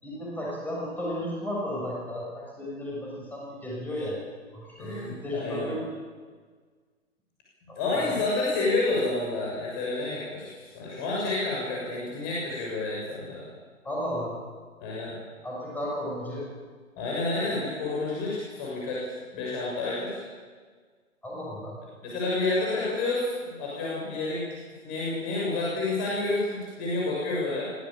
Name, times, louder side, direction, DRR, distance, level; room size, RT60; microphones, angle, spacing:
voice 1, 0.0-4.2 4.5-5.8 7.7-7.8 13.8-14.3 15.4-16.5 21.2-21.8, left 1 dB, 5° left, -4 dB, 6.7 m, -34 dB
voice 2, 4.8-5.7 7.7-13.4 14.8-15.2 17.0-20.2 22.0-24.4 24.8-27.7, left 2 dB, 25° left, -4 dB, 6.8 m, -29 dB
24.5 x 17.5 x 8.9 m, 1.5 s
figure-of-eight pair, 135°, 41 cm